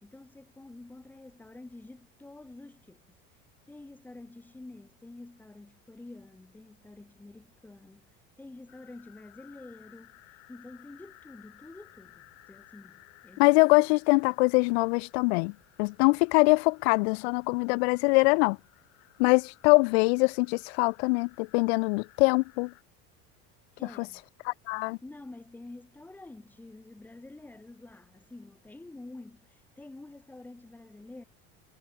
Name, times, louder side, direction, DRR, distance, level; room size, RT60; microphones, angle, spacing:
voice 1, 0.0-3.2 3.7-10.2 10.5-13.5 23.8-24.2 25.0-31.2, left 2 dB, 5° left, 3.1 m, -48 dB
sound 1, 8.7-22.8, left 25 dB, 55° left, 6.7 m, -58 dB
voice 2, 13.4-15.5 15.8-18.6 19.2-22.7 24.7-25.0, left 30 dB, 85° left, 0.5 m, -23 dB
cardioid pair, 180°, 31 cm